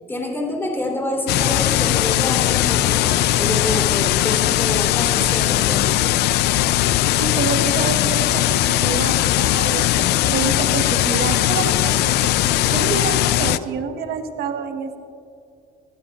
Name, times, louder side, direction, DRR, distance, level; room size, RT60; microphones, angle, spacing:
voice 1, 0.1-6.0, left 1 dB, 15° left, 0 dB, 3.3 m, -27 dB
sound 1, 1.3-13.6, left 14 dB, 75° left, 0.4 m, -19 dB
voice 2, 7.2-12.3 12.7-15.0, right 5 dB, 70° right, 6 dB, 1.3 m, -27 dB
22.5 x 16.0 x 2.4 m, 2.4 s
cardioid pair, 110°, 17 cm